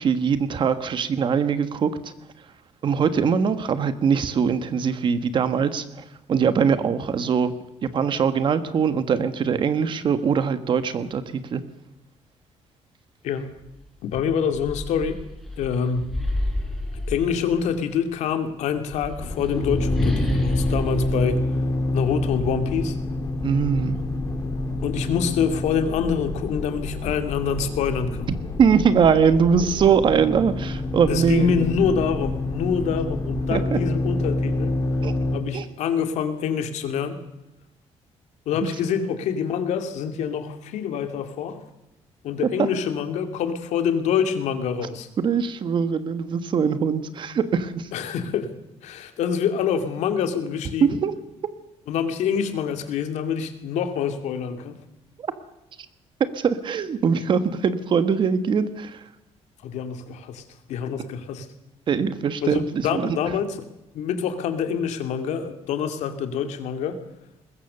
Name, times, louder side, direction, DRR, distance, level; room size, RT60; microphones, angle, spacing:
voice 1, 0.0-2.5 2.8-7.5 7.8-11.6 23.4-24.0 28.6-31.6 33.5-33.8 35.0-35.1 35.5-35.6 38.6-38.7 42.6-42.7 45.2-47.9 50.8-51.1 55.2-55.3 56.2-59.1 61.9-63.2, right 6 dB, 45° right, 11 dB, 1.5 m, -22 dB
sound 1, 13.6-13.7 14.1-17.8 18.7-22.3, left 1 dB, ahead, 5.0 m, -29 dB
voice 2, 14.0-15.2 15.6-16.1 17.1-21.4 21.9-23.0 24.8-28.3 31.1-34.8 35.3-37.2 38.5-41.6 42.2-45.1 47.9-48.5 48.8-51.0 51.9-54.8 59.6-60.4 60.7-61.5 62.4-63.5 63.9-67.0, left 7 dB, 90° left, 7 dB, 2.4 m, -26 dB
sound 2, 19.2-35.4, left 2 dB, 30° left, 3.0 m, -27 dB
22.5 x 20.5 x 6.8 m, 0.92 s
cardioid pair, 155°, 11 cm